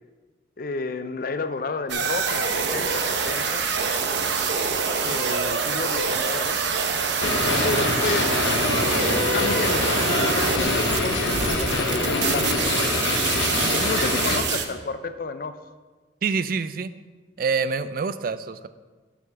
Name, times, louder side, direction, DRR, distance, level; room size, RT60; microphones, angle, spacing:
voice 1, 0.6-4.0 5.0-6.6 7.6-8.3 9.1-13.1 13.8-15.6, left 3 dB, 50° left, 10 dB, 0.5 m, -31 dB
sound 1, 1.9-14.6, right 5 dB, 70° right, 0.8 m, -25 dB
sound 2, 7.2-14.4, left 2 dB, 90° left, 1.1 m, -24 dB
voice 2, 16.2-16.9 17.4-18.7, right 5 dB, 50° right, 14 dB, 0.4 m, -26 dB
6.1 x 5.8 x 6.9 m, 1.3 s
head